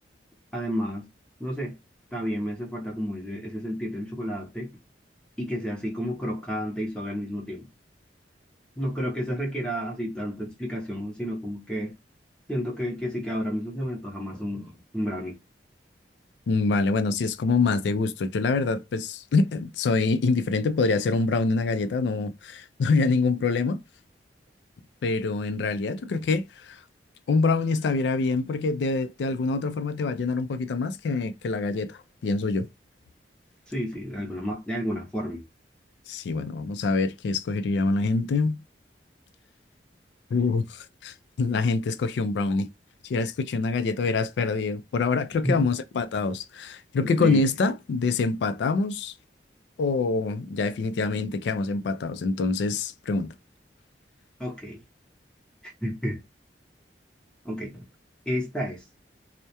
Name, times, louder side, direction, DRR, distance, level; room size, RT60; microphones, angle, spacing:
voice 1, 0.5-1.0 1.4-1.8 2.1-4.7 5.4-7.7 8.8-11.9 12.5-15.4 33.7-35.4 45.4-45.7 47.2-47.4 54.4-54.8 55.6-56.2 57.4-57.8 58.3-58.8, equal, 5° left, 0.6 m, -31 dB
voice 2, 16.5-23.8 25.0-26.8 27.3-32.7 36.1-38.6 40.3-42.7 43.0-49.1 49.8-53.3, left 3 dB, 70° left, 0.3 m, -25 dB
2.2 x 2.1 x 2.7 m
head